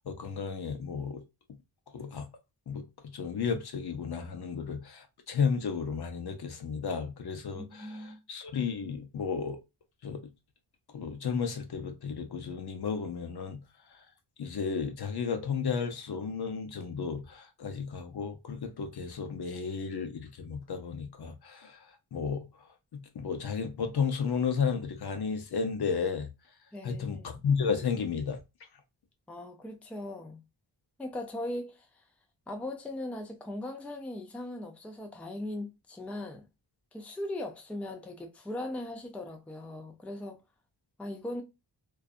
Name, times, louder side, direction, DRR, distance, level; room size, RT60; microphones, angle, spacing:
voice 1, 0.1-1.2 1.9-2.3 2.7-2.8 3.1-9.6 10.0-10.2 10.9-13.6 14.4-21.8 22.1-22.4 22.9-26.3 26.8-28.4, left 6 dB, 60° left, 0.6 m, -33 dB
voice 2, 7.5-8.2 26.7-27.4 29.3-30.4 31.0-31.9 32.5-36.4 36.9-40.4 41.0-41.4, left 1 dB, 5° left, 0.4 m, -39 dB
2.6 x 2.4 x 2.3 m
wide cardioid pair, 105°, 44 cm